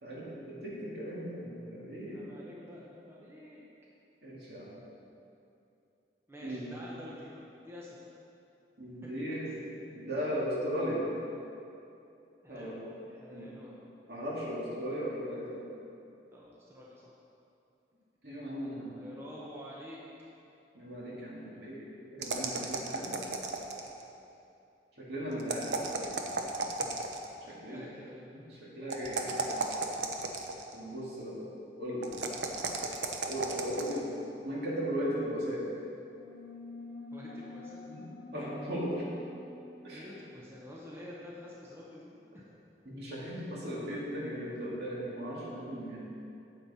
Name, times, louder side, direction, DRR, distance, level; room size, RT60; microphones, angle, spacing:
voice 1, 0.0-2.2 4.2-4.7 6.4-6.7 8.8-11.1 12.5-12.7 13.3-13.5 14.1-15.7 18.2-18.9 20.7-21.8 22.1-23.1 25.0-26.2 27.5-27.8 28.6-29.6 30.7-31.4 31.8-32.1 33.2-34.1 34.4-35.6 37.9-38.0 38.3-38.9 39.8-40.1 42.9-46.0, equal, 70° right, -6 dB, 2.3 m, -37 dB
voice 2, 2.0-3.6 6.3-8.1 9.0-9.5 12.4-13.8 16.3-17.1 19.0-20.0 27.5-28.3 37.1-37.8 39.9-42.5, left 1 dB, 15° right, -5 dB, 0.9 m, -48 dB
sound 1, 22.2-24.0 25.4-27.3 28.9-30.7 32.0-34.0, right 3 dB, 85° right, 0.8 m, -34 dB
sound 2, 36.1-41.3, left 2 dB, 65° left, 1.7 m, -48 dB
9.1 x 7.9 x 4.2 m, 2.7 s
head